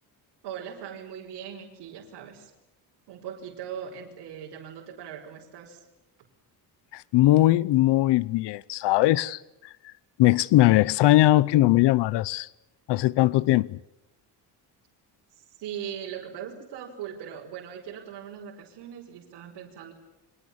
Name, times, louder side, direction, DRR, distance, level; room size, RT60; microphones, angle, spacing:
voice 1, 0.4-2.5 3.1-5.9 15.3-19.9, right 8 dB, 75° right, 5.3 m, -40 dB
voice 2, 6.9-9.9 10.2-12.5 12.9-13.8, left 16 dB, 80° left, 0.9 m, -20 dB
29.5 x 25.5 x 7.2 m
cardioid pair, 175°, 41 cm